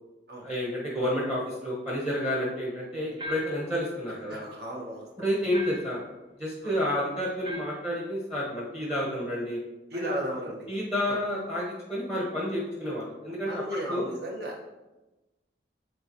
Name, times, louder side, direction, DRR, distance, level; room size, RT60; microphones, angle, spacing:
voice 1, 0.4-4.5 5.2-6.0 6.4-9.6 9.9-10.1 10.7-14.0, equal, 5° right, -4 dB, 1.0 m, -30 dB
sound 1, 3.2-3.7 5.5-6.0 7.4-7.9, left 1 dB, 25° right, 0.6 m, -39 dB
voice 2, 4.3-5.5 6.6-6.8 9.9-10.7 11.1-11.2 13.5-14.7, equal, 60° right, -2 dB, 1.4 m, -35 dB
8.8 x 3.8 x 3.0 m, 1.1 s
head